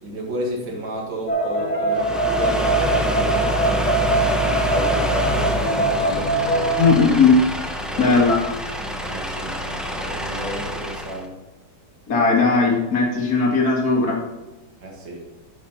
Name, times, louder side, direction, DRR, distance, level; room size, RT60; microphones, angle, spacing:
voice 1, 0.0-6.7 7.8-8.2 8.8-11.3 14.8-15.3, right 1 dB, 75° right, 0 dB, 2.6 m, -32 dB
sound 1, 1.3-6.9, right 1 dB, 30° left, 0.8 m, -22 dB
sound 2, 1.9-11.2, right 1 dB, ahead, 0.3 m, -26 dB
voice 2, 6.8-7.3 8.0-8.4 12.1-14.2, left 4 dB, 55° left, -2 dB, 2.6 m, -17 dB
9.7 x 7.7 x 4.1 m, 1.1 s
omnidirectional pair, 2.0 m